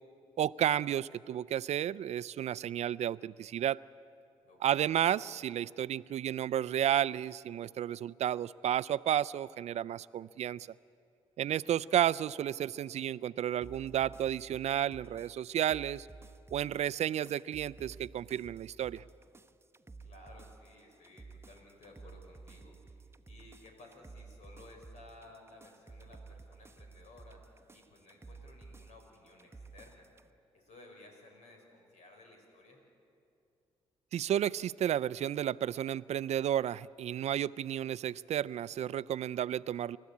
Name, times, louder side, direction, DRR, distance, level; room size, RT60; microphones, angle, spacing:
voice 1, 0.4-3.8 4.6-10.7 11.4-16.1 16.5-19.0 34.1-40.0, right 11 dB, 65° right, 19 dB, 0.4 m, -32 dB
voice 2, 4.4-5.0 11.4-11.8 20.0-30.1 30.5-32.8, left 2 dB, 75° left, 2 dB, 5.6 m, -57 dB
sound 1, 13.6-30.3, right 3 dB, 20° right, 0.9 m, -53 dB
30.0 x 13.0 x 8.5 m, 2.5 s
supercardioid pair, 65°, 12 cm